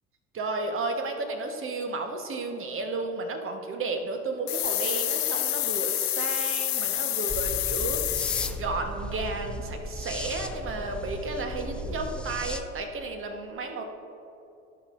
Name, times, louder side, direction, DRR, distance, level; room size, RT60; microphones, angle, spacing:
voice 1, 0.3-13.8, right 3 dB, 35° right, 4 dB, 1.4 m, -33 dB
sound 1, 4.5-8.5, left 14 dB, 45° left, 0.8 m, -28 dB
sound 2, 7.3-12.6, equal, 5° left, 0.3 m, -36 dB
16.0 x 5.8 x 2.7 m, 2.8 s
figure-of-eight pair, 65°, 38 cm